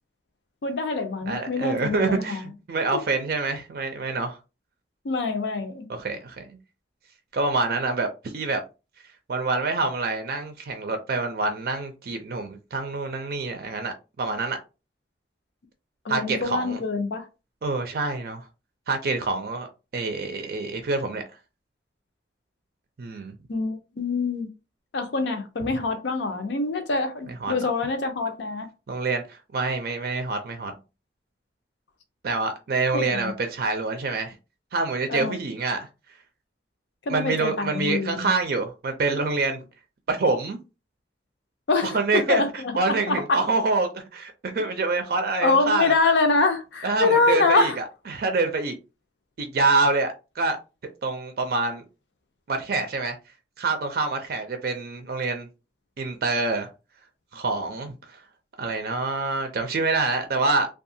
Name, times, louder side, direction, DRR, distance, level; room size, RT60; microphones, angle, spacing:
voice 1, 0.6-2.4 2.9-3.0 5.0-5.9 16.0-17.3 23.5-24.5 24.9-28.7 32.9-33.3 35.1-35.3 37.1-38.3 41.7-43.4 45.4-47.8, left 3 dB, 75° left, 0.6 m, -25 dB
voice 2, 1.3-4.4 5.9-6.5 7.3-8.6 9.3-14.6 16.1-16.8 17.6-18.4 18.9-19.7 19.9-21.2 23.0-23.3 27.4-27.5 28.9-30.7 32.2-34.3 34.7-35.9 37.1-39.6 40.1-40.6 41.8-45.9 46.8-48.7 49.4-50.6 51.0-51.8 52.5-53.2 53.6-55.5 56.0-56.7 57.3-57.9 58.6-60.7, right 3 dB, 55° right, 0.4 m, -26 dB
2.7 x 2.3 x 2.6 m
head